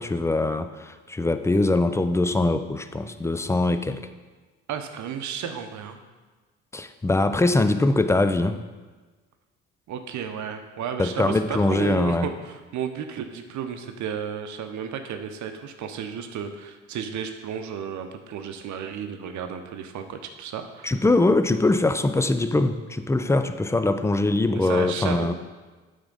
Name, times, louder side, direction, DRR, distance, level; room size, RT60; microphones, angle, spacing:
voice 1, 0.0-4.0 6.7-8.6 11.0-12.3 20.8-25.3, left 2 dB, 10° left, 10 dB, 0.4 m, -22 dB
voice 2, 4.7-6.0 9.9-21.0 24.6-25.3, right 7 dB, 55° right, 7 dB, 0.8 m, -33 dB
8.7 x 3.6 x 4.0 m, 1.3 s
hypercardioid pair, 60°, 35 cm